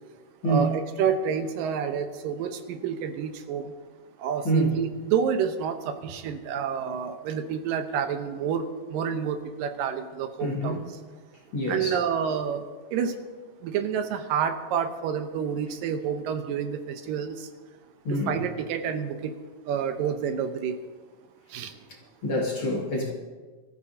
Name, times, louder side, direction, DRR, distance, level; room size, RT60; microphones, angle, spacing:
voice 1, 0.4-3.7 4.2-10.8 11.7-12.6 12.9-13.2 13.6-17.5 18.1-19.3 19.7-20.8 21.5-21.7, right 7 dB, 85° right, 7 dB, 2.6 m, -29 dB
voice 2, 10.4-10.9 11.5-12.0 18.0-18.4 22.2-23.1, right 1 dB, 45° left, -2 dB, 2.3 m, -26 dB
24.5 x 14.0 x 2.8 m, 1.4 s
omnidirectional pair, 3.9 m